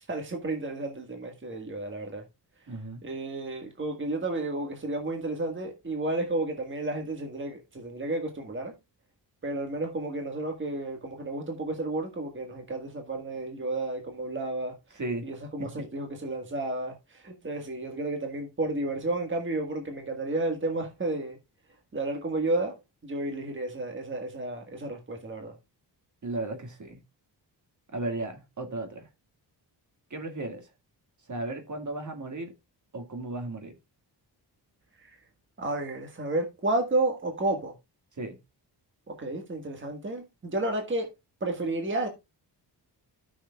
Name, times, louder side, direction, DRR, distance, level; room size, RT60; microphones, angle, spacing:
voice 1, 0.0-2.2 3.0-8.7 9.4-14.7 15.2-21.4 21.9-22.8 23.0-25.5 35.0-35.2 35.6-37.7 39.1-41.1 41.4-42.1, right 2 dB, 25° right, 1.6 m, -32 dB
voice 2, 2.7-3.0 14.9-15.3 15.6-15.9 26.2-27.0 27.9-29.1 30.1-30.7 31.3-32.5 32.9-33.7 38.1-38.4, right 2 dB, 45° right, 2.0 m, -35 dB
13.0 x 6.4 x 2.3 m
wide cardioid pair, 105°, 43 cm